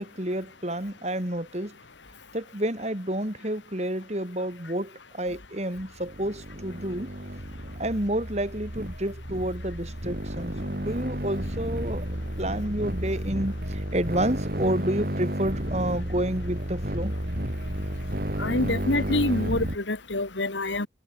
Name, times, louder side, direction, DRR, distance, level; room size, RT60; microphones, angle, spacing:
voice 1, 0.0-1.8 2.3-7.1 7.8-17.1, right 1 dB, 35° right, 3.3 m, -30 dB
sound 1, 5.9-19.8, equal, 55° right, 4.3 m, -32 dB
voice 2, 18.4-20.9, left 2 dB, 90° left, 2.4 m, -26 dB
head